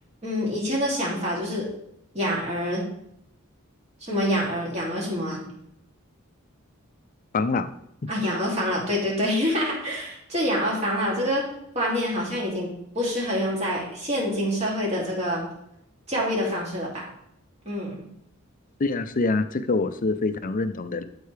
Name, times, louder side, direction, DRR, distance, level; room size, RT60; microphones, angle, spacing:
voice 1, 0.2-1.7 2.1-2.8 4.0-5.4 8.1-11.4 11.7-15.4 16.1-17.1 17.6-18.0, equal, 30° right, -4 dB, 2.7 m, -26 dB
voice 2, 7.3-7.7 18.8-21.0, left 3 dB, 40° left, 11 dB, 0.5 m, -25 dB
12.5 x 4.6 x 3.3 m, 0.76 s
head